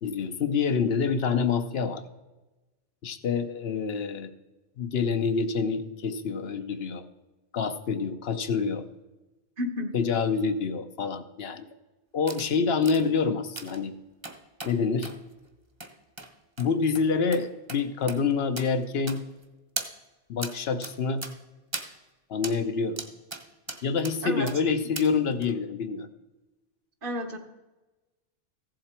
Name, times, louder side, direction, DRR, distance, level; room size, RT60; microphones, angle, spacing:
voice 1, 0.0-2.0 3.0-4.3 4.8-7.1 7.5-8.8 9.9-11.7 12.1-13.9 14.6-15.1 16.6-19.2 20.3-21.2 22.3-23.0 23.8-26.1, left 5 dB, 70° left, 9 dB, 0.9 m, -27 dB
voice 2, 9.6-9.9 24.2-24.5 27.0-27.4, left 1 dB, 55° right, 7 dB, 1.2 m, -31 dB
sound 1, 12.3-12.5 12.8-13.0 13.6-13.8 14.2-14.7 15.0-15.2 15.8-15.9 16.2-16.3 16.6-16.7 17.0-17.1 17.3-17.4 17.7-17.8 18.1-18.2 18.6-18.7 19.1-19.4 19.8-19.9 20.4-20.5 20.8-20.9 21.2-21.3 21.7-21.9 22.4-22.6 23.0-23.4 23.7-24.2 24.5-24.6 25.0-25.1 25.4-25.5, right 3 dB, 25° right, 0.9 m, -37 dB
14.5 x 7.6 x 4.4 m, 1.1 s
omnidirectional pair, 1.1 m